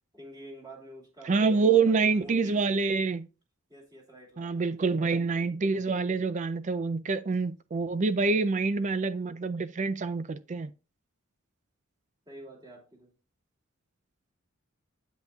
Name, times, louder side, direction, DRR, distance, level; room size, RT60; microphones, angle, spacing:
voice 1, 0.1-2.8 3.7-5.2 12.2-13.1, equal, 20° right, 2.6 m, -48 dB
voice 2, 1.3-3.3 4.4-10.7, right 4 dB, 35° right, 0.4 m, -26 dB
8.4 x 8.1 x 2.3 m
head